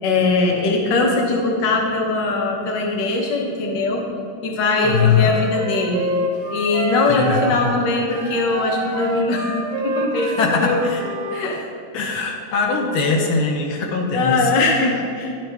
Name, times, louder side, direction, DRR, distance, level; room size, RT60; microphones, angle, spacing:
voice 1, 0.0-4.0 4.4-6.1 6.5-10.9 11.3-11.6 14.1-15.4, left 3 dB, 60° left, 1 dB, 1.5 m, -21 dB
Wind instrument woodwind instrument, 4.7-7.8 8.1-11.5, right 2 dB, 90° right, 1.7 m, -28 dB
voice 2, 4.8-5.3 7.1-7.6 10.4-11.0 11.9-14.5, left 5 dB, 80° left, 0 dB, 1.7 m, -21 dB
10.5 x 6.0 x 3.4 m, 2.5 s
omnidirectional pair, 2.3 m